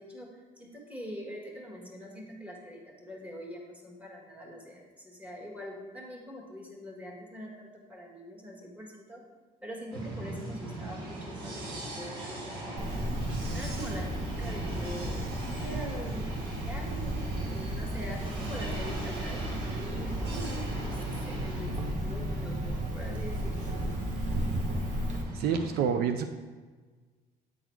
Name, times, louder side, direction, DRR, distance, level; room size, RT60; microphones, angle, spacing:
voice 1, 0.0-9.2 9.6-11.7 11.9-12.8 13.5-23.5, equal, 10° right, -2 dB, 1.6 m, -43 dB
sound 1, 9.9-25.8, right 1 dB, 90° right, 1.5 m, -40 dB
Cricket, 12.8-25.2, right 1 dB, 45° right, 1.2 m, -34 dB
voice 2, 25.3-26.4, right 7 dB, 70° right, 8 dB, 0.5 m, -28 dB
8.4 x 4.0 x 4.5 m, 1.4 s
cardioid pair, 110°, 17 cm